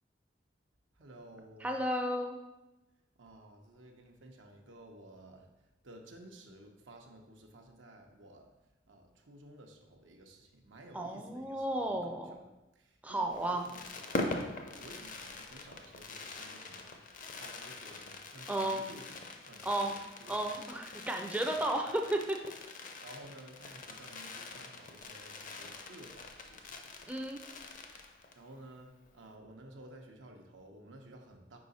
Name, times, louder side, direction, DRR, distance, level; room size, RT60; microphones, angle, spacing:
voice 1, 1.0-1.7 3.2-5.5 5.8-8.5 8.9-12.4 12.7-14.2 14.8-19.1 19.4-20.4 21.5-22.0 23.0-26.7 28.0-31.6, right 1 dB, 90° right, 3 dB, 0.8 m, -54 dB
voice 2, 1.6-2.3 10.9-12.3 13.0-13.7 18.5-18.8 19.6-20.0 20.3-22.4 27.1-27.4, right 1 dB, 10° right, 3 dB, 0.4 m, -33 dB
Fireworks, 13.3-28.5 28.8-28.9 29.1-29.3, left 2 dB, 45° left, 0.6 m, -43 dB
4.8 x 4.8 x 4.0 m, 1.0 s
head